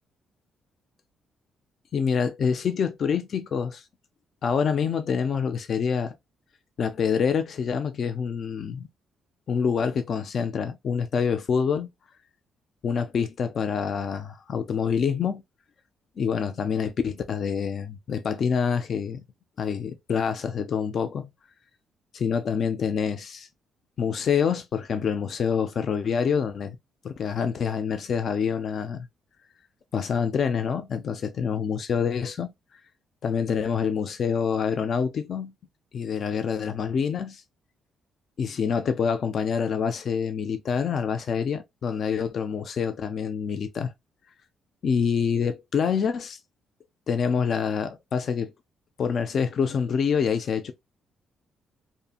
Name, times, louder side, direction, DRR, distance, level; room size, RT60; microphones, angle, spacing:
voice 1, 1.9-3.8 4.4-6.1 6.8-8.9 9.5-11.9 12.8-15.4 16.2-19.2 19.6-21.3 22.1-23.5 24.0-26.8 27.0-29.1 29.9-32.5 33.2-35.5 35.9-37.4 38.4-43.9 44.8-46.4 47.1-48.5 49.0-50.7, left 6 dB, 55° left, 0.3 m, -26 dB
2.7 x 2.5 x 2.3 m
cardioid pair, 90°, 0 cm